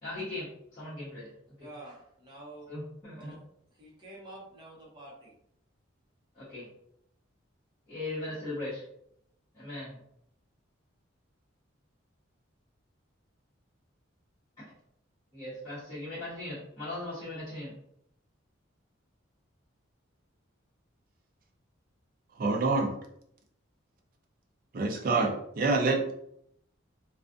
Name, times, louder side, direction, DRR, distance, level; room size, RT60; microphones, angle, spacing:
voice 1, 0.0-1.7 2.7-3.3 6.3-6.7 7.9-8.8 9.5-10.0 14.6-14.7 15.3-17.7 25.1-25.3, left 2 dB, 20° left, 1.1 m, -39 dB
voice 2, 1.6-2.7 3.2-3.4 3.8-5.3, right 1 dB, 20° right, 0.8 m, -48 dB
voice 3, 22.4-22.9 24.7-25.3 25.6-26.1, right 3 dB, 45° right, 0.4 m, -26 dB
2.4 x 2.3 x 2.5 m
head